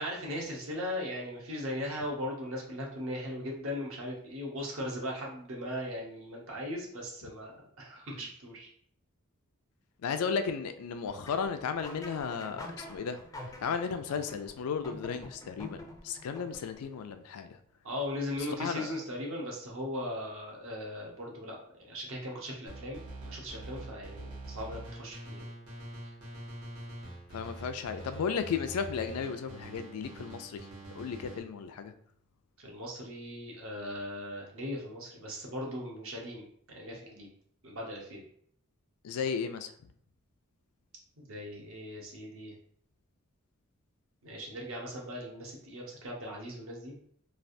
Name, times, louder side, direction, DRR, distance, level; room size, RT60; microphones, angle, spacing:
voice 1, 0.0-8.7 17.8-25.5 32.6-37.3 37.6-38.2 41.2-42.5 44.2-46.9, left 1 dB, 65° right, -1 dB, 0.8 m, -38 dB
voice 2, 10.0-17.6 18.6-18.9 27.3-30.6 30.9-31.9 39.0-39.7, left 6 dB, 90° left, 9 dB, 0.4 m, -34 dB
sound 1, 11.1-17.0, left 1 dB, 15° left, 0.4 m, -47 dB
sound 2, 22.7-31.4, right 1 dB, 85° right, 1.3 m, -45 dB
3.2 x 2.4 x 2.6 m, 0.65 s
head